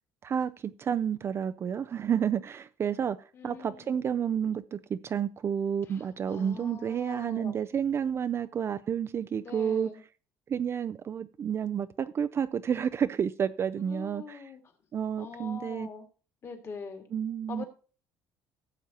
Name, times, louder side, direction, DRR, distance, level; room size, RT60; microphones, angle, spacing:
voice 1, 0.2-9.9 10.5-14.4 14.9-15.9 17.1-17.7, right 8 dB, 35° right, 0.4 m, -30 dB
voice 2, 3.3-4.1 5.9-7.5 9.4-10.0 13.8-14.6 15.2-16.1 16.4-17.1 17.5-17.7, left 5 dB, 35° left, 2.0 m, -43 dB
16.5 x 7.2 x 2.9 m
cardioid pair, 130°, 8 cm